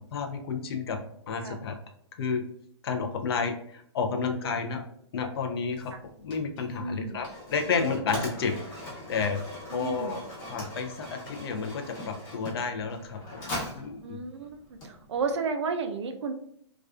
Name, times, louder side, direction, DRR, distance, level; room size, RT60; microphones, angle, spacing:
voice 1, 0.1-1.0 1.3-1.7 2.2-2.4 2.8-4.8 5.1-5.9 6.2-9.4 9.7-10.2 10.5-13.5 13.8-14.2, left 5 dB, 55° left, 4 dB, 0.5 m, -31 dB
voice 2, 4.2-4.6 5.9-6.0 6.8-7.2 9.7-10.1 14.0-14.6 14.9-16.3, right 4 dB, 70° right, 6 dB, 0.4 m, -32 dB
Mechanisms, 5.7-15.4, left 1 dB, 30° left, 0.9 m, -41 dB
2.3 x 2.3 x 2.3 m, 0.67 s
hypercardioid pair, 130°, 15 cm